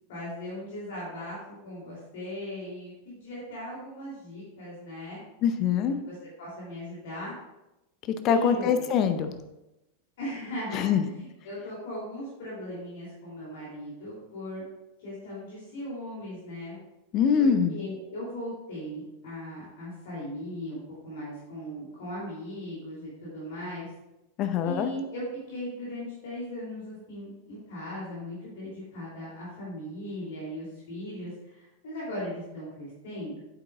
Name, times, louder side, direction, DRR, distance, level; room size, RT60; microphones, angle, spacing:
voice 1, 0.1-1.4 1.6-5.2 6.1-7.3 8.3-8.9 10.2-10.9 11.2-14.6 15.0-16.8 17.4-20.8 21.0-23.9 24.6-33.4, equal, 55° left, -7 dB, 3.0 m, -38 dB
voice 2, 5.4-6.0 8.2-9.3 10.7-11.0 17.1-17.7 24.4-24.9, left 7 dB, 35° left, 9 dB, 0.6 m, -23 dB
8.8 x 8.4 x 2.4 m, 0.95 s
figure-of-eight pair, 90°, 0 cm